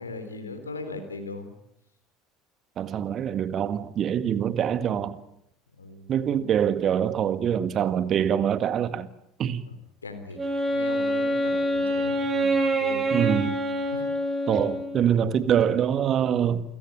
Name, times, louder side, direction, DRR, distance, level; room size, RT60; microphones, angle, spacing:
voice 1, 0.0-1.5 5.8-6.5 9.7-9.8 10.0-13.1 13.9-14.0, left 3 dB, 85° left, 3.5 m, -39 dB
voice 2, 2.8-5.2 6.1-9.1 9.4-9.6 13.1-13.6 14.5-16.6, right 9 dB, 40° right, 1.8 m, -24 dB
Wind instrument woodwind instrument, 10.3-15.2, right 1 dB, 25° right, 6.3 m, -26 dB
28.5 x 17.0 x 9.1 m
figure-of-eight pair, 70°, 0 cm